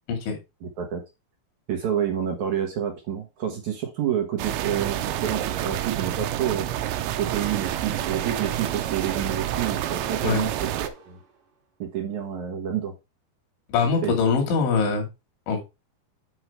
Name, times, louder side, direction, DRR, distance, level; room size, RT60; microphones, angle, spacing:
voice 1, 0.6-1.0 1.7-6.7 7.1-11.2 11.8-12.9 14.0-14.1, right 9 dB, 70° right, 3 dB, 1.8 m, -29 dB
sound 1, 4.4-10.9, right 12 dB, 85° right, 3.1 m, -28 dB
sound 2, 7.3-11.4, right 6 dB, 50° right, 1.8 m, -41 dB
voice 2, 13.7-15.1 15.5-15.6, left 5 dB, 75° left, 2 dB, 4.7 m, -23 dB
8.9 x 4.8 x 4.6 m, 0.25 s
omnidirectional pair, 5.4 m